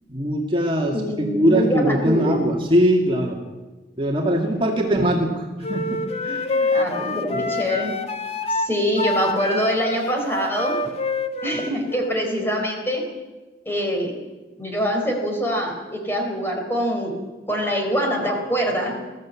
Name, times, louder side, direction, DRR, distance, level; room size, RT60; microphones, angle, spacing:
voice 1, 0.1-3.4 4.0-6.7 7.3-7.4, equal, 30° right, 0 dB, 2.2 m, -21 dB
voice 2, 0.9-2.4 4.7-4.9 6.7-7.9 8.5-10.8 11.4-13.0 13.7-14.1 14.6-17.1 17.5-18.9, equal, 15° left, 1 dB, 4.0 m, -24 dB
sound 1, 5.6-12.1, left 2 dB, 35° left, 1.3 m, -26 dB
21.0 x 14.5 x 8.6 m, 1.2 s
head